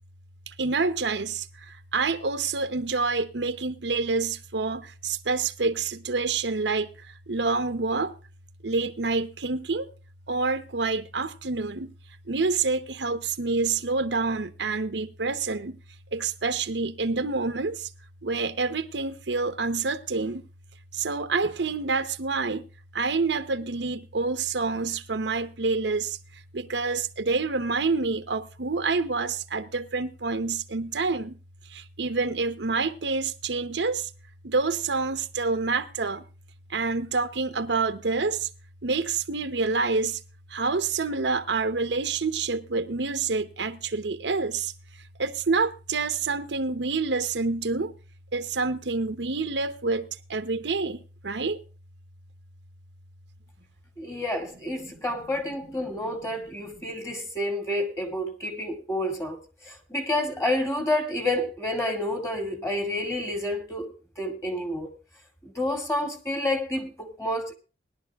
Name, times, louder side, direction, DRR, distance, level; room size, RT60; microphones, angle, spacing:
voice 1, 0.6-6.9 7.3-8.1 8.6-9.9 10.3-11.9 12.3-15.8 16.1-17.9 18.2-20.4 20.9-22.7 22.9-26.2 26.5-31.4 31.7-34.1 34.4-36.2 36.7-38.5 38.8-40.2 40.5-44.7 45.2-47.9 48.3-51.6 54.8-54.9, right 4 dB, 85° right, 0.9 m, -27 dB
voice 2, 54.0-59.4 59.6-63.9 64.2-64.9 65.4-67.5, left 1 dB, 15° left, 2.2 m, -29 dB
20.0 x 11.5 x 2.4 m
head